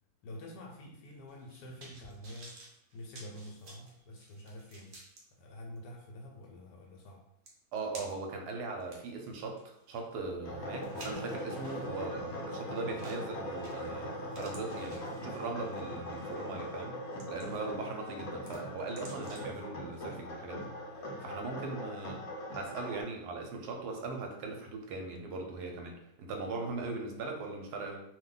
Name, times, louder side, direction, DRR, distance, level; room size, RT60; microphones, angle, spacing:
voice 1, 0.2-5.0 5.3-7.2, left 1 dB, 80° left, 0 dB, 1.2 m, -48 dB
sound 1, 1.3-5.2 5.8-5.9 7.0-7.1 7.5-8.3 8.8-11.9 13.0-13.3 13.6-14.0 14.3-15.6 16.2-16.4 16.9-17.8 18.1-19.6 19.9-20.0, right 2 dB, 55° right, 0.7 m, -53 dB
voice 2, 7.7-17.0 17.3-20.7 21.0-22.2 22.5-28.0, right 3 dB, 75° right, 2 dB, 1.1 m, -39 dB
sound 2, 10.4-23.0, equal, 55° left, 0.8 m, -41 dB
Bowed string instrument, 11.6-16.9, right 5 dB, 10° right, 0.9 m, -60 dB
2.7 x 2.2 x 3.8 m, 0.79 s
omnidirectional pair, 1.8 m